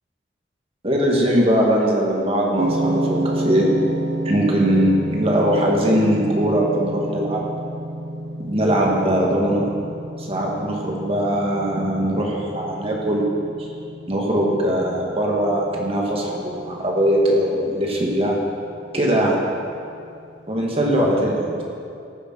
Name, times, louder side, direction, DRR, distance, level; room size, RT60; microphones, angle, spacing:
voice 1, 0.8-3.7 4.3-7.4 8.4-9.7 10.2-13.3 13.6-13.7 14.1-18.4 18.9-19.4 20.5-21.5, equal, 30° right, -2 dB, 2.0 m, -20 dB
sound 1, 2.6-20.8, right 1 dB, 75° right, 0.6 m, -30 dB
14.5 x 6.9 x 6.3 m, 2.5 s
head